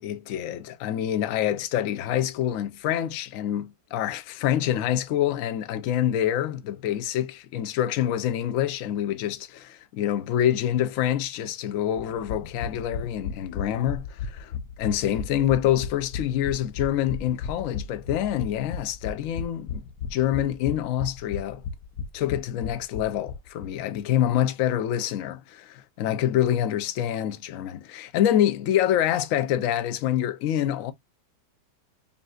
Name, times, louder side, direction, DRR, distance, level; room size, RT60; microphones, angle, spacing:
voice 1, 0.0-19.8 20.1-21.6 22.1-30.9, left 11 dB, 65° left, 0.9 m, -26 dB
sound 1, 12.0-23.7 24.0-24.1 24.3-24.4, left 5 dB, 80° left, 1.3 m, -35 dB
5.5 x 2.6 x 2.4 m
omnidirectional pair, 1.9 m